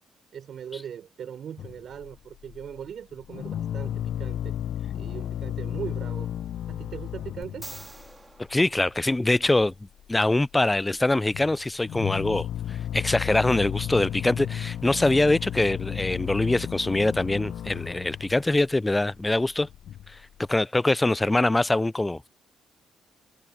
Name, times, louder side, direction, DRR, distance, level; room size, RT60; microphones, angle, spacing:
voice 1, 0.3-4.5 4.9-6.3 6.7-7.7, right 8 dB, 60° right, 5.6 m, -39 dB
sound 1, 1.6-2.9 3.2-8.2 8.5-8.9 9.2-9.7 10.0-10.7 11.0-20.6, left 10 dB, 70° left, 0.5 m, -34 dB
sound 2, 7.4-9.7 13.1-13.2, right 2 dB, 15° right, 2.1 m, -46 dB
voice 2, 8.5-9.7 10.1-19.7 20.1-20.2 20.5-22.3, left 2 dB, 15° left, 0.3 m, -23 dB
cardioid pair, 90°, 0 cm